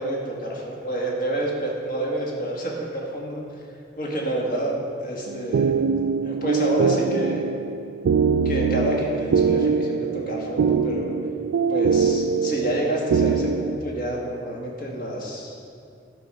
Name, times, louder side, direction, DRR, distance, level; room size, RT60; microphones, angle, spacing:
voice 1, 0.0-3.4 4.0-5.7 6.2-7.4 8.4-11.1 11.7-15.6, right 1 dB, 45° left, -2 dB, 1.8 m, -28 dB
sound 1, 5.3-13.8, right 5 dB, 80° right, 0.3 m, -23 dB
11.0 x 6.3 x 5.5 m, 2.5 s
head